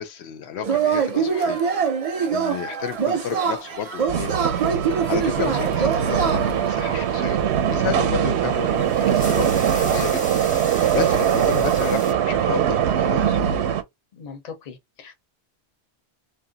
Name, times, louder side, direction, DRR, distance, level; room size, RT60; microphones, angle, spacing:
voice 1, 0.0-1.6 2.3-4.3 5.1-7.4 7.7-10.2 10.6-13.4, left 9 dB, 80° left, 0.8 m, -32 dB
Yell / Cheering, 0.6-6.7, right 6 dB, 45° right, 0.5 m, -24 dB
sound 1, 2.9-3.9 5.2-5.7 7.9-8.1 8.4-12.1, equal, 10° left, 0.5 m, -38 dB
sound 2, 4.1-13.8, right 9 dB, 85° right, 0.9 m, -21 dB
voice 2, 14.1-15.2, left 5 dB, 45° left, 0.7 m, -39 dB
2.5 x 2.1 x 3.8 m
omnidirectional pair, 1.1 m